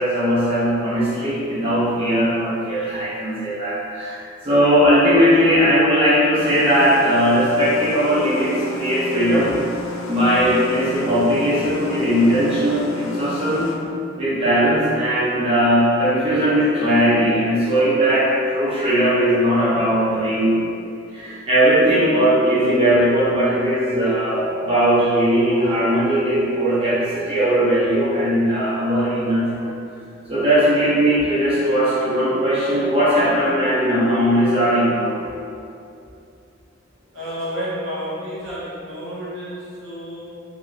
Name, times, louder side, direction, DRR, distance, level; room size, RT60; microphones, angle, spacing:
voice 1, 0.0-9.5 10.1-13.7 14.2-20.6 21.1-29.7 30.3-35.2, equal, 30° right, -11 dB, 0.7 m, -18 dB
sound 1, 6.4-13.8, equal, 85° left, 0.4 m, -33 dB
voice 2, 37.1-40.4, equal, 75° right, -10 dB, 1.1 m, -30 dB
3.3 x 2.6 x 2.4 m, 2.6 s
head